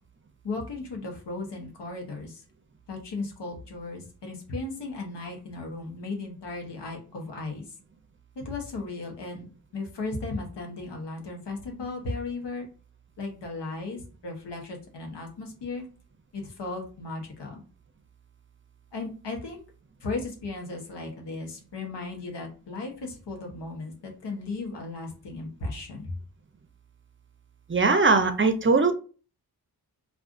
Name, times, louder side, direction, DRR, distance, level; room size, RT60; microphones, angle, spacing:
voice 1, 0.4-2.4 2.9-7.6 8.4-12.7 13.2-15.9 16.3-17.6 18.9-19.6 20.0-26.2, left 3 dB, 90° left, 2 dB, 0.9 m, -36 dB
voice 2, 27.7-28.9, right 4 dB, 30° right, 8 dB, 0.5 m, -20 dB
2.4 x 2.4 x 3.5 m, 0.37 s
cardioid pair, 50°, 40 cm